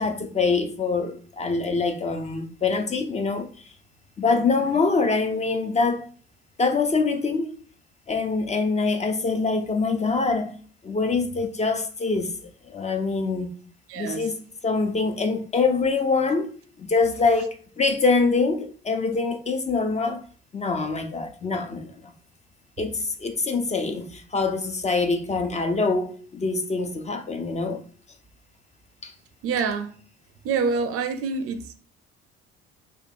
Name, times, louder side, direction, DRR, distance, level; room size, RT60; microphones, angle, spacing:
voice 1, 0.0-3.7 4.2-6.1 6.6-7.6 8.1-10.6 10.8-13.5 14.0-14.4 14.6-16.5 16.8-20.2 20.5-22.1 22.8-27.8 29.0-29.1, left 4 dB, 25° left, 0.5 m, -24 dB
voice 2, 13.9-14.3 29.4-30.0 30.4-31.7, right 5 dB, 50° right, 0.5 m, -26 dB
3.6 x 2.2 x 2.5 m
hypercardioid pair, 55°, 30 cm